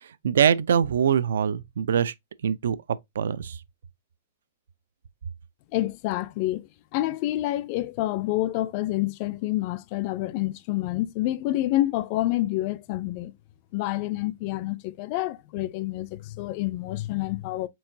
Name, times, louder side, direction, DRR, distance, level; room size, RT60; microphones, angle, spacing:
voice 1, 0.2-2.1 2.4-2.8 3.2-3.6, right 8 dB, 80° right, 0.4 m, -23 dB
voice 2, 5.7-13.3 13.7-17.7, left 16 dB, 30° left, 0.3 m, -28 dB
4.5 x 3.6 x 2.5 m
supercardioid pair, 175°, 0 cm